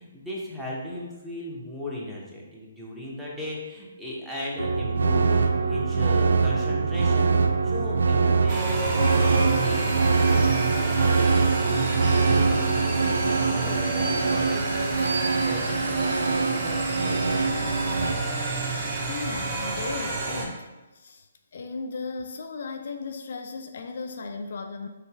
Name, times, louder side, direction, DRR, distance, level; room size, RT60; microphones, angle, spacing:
voice 1, 0.0-7.4 7.6-17.4 18.0-18.1, left 1 dB, ahead, -6 dB, 1.0 m, -37 dB
sound 1, 4.6-18.1, right 4 dB, 70° right, 0.3 m, -23 dB
sound 2, 8.5-20.4, right 2 dB, 30° right, 1.0 m, -30 dB
voice 2, 19.1-24.9, left 4 dB, 55° left, 6 dB, 0.3 m, -36 dB
5.6 x 4.0 x 2.3 m, 1.1 s
figure-of-eight pair, 135°, 0 cm